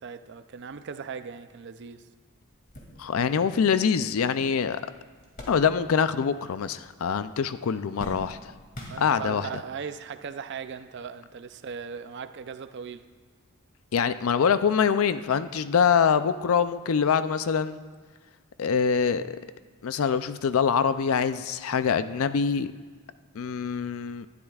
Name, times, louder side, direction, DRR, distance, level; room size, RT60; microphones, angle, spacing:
voice 1, 0.0-2.0 8.8-13.0, right 6 dB, 55° right, 10 dB, 0.5 m, -38 dB
sound 1, 2.4-6.2 6.5-7.2 7.5-9.5 10.3-10.4 11.7-11.8, left 1 dB, 40° left, 2.3 m, -45 dB
voice 2, 3.0-4.8 5.5-8.5 9.0-9.5 13.9-17.8 18.6-19.4 19.8-22.7 23.4-24.3, left 6 dB, 70° left, 12 dB, 0.4 m, -24 dB
20.0 x 12.0 x 2.4 m, 1.5 s
head